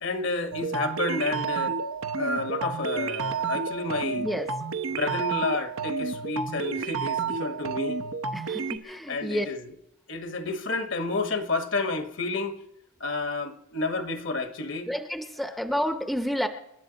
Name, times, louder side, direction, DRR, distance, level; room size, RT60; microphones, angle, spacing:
voice 1, 0.0-1.8 2.2-4.3 4.9-8.0 9.1-9.7 10.1-12.6 13.0-14.9, left 3 dB, 60° left, 1.2 m, -30 dB
sound 1, 0.5-8.8, right 5 dB, 75° right, 0.8 m, -30 dB
voice 2, 4.2-4.5 8.3-9.5 14.9-16.5, equal, ahead, 0.7 m, -30 dB
29.0 x 11.0 x 3.9 m
head